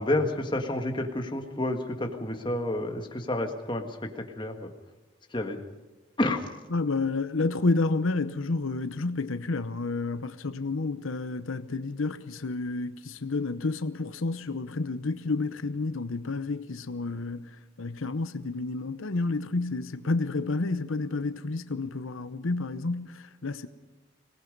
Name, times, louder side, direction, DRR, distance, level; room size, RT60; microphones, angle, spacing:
voice 1, 0.0-4.7 5.3-5.6 6.2-6.5, left 1 dB, 25° left, 1.7 m, -30 dB
voice 2, 6.7-23.7, left 3 dB, 80° left, 0.8 m, -30 dB
26.0 x 18.5 x 5.4 m
head